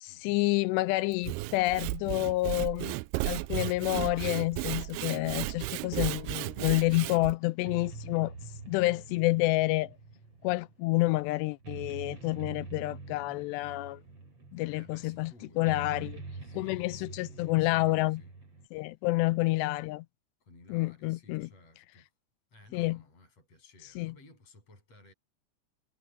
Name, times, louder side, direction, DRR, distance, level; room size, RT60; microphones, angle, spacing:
voice 1, 0.0-3.0 3.3-8.3 8.7-10.0 10.4-14.0 14.5-15.3 15.6-16.2 16.5-18.2 18.7-20.1 20.7-21.5 22.7-23.0 24.0-24.1, left 20 dB, 85° left, 2.7 m, -29 dB
Sawing / Wood, 1.1-7.3, right 20 dB, 85° right, 2.4 m, -34 dB
sound 1, 7.3-18.7, right 3 dB, 35° right, 4.8 m, -46 dB
voice 2, 14.7-15.8 16.4-18.3 18.6-18.9 20.4-22.1 22.5-25.1, left 2 dB, 35° left, 8.9 m, -57 dB
omnidirectional pair, 4.9 m